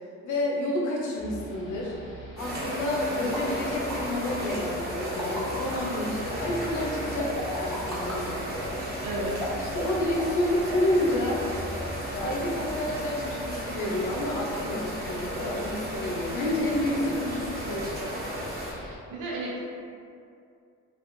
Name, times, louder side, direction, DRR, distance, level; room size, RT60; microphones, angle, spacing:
voice 1, 0.2-1.9 2.4-8.4 9.5-11.4 12.1-17.9, left 1 dB, 85° left, -3 dB, 0.7 m, -29 dB
sound 1, 1.2-19.0, equal, 40° left, 0.8 m, -43 dB
sound 2, 2.4-18.7, equal, 30° right, 1.1 m, -34 dB
sound 3, 3.3-3.4 3.9-4.0 4.9-5.9 7.2-8.2 9.3-9.7 10.1-10.4 10.7-11.0 11.3-11.4, equal, ahead, 0.8 m, -36 dB
voice 2, 9.0-9.4 19.1-19.6, right 2 dB, 85° right, -5 dB, 0.8 m, -32 dB
3.4 x 2.4 x 2.6 m, 2.4 s
cardioid pair, 90°, 30 cm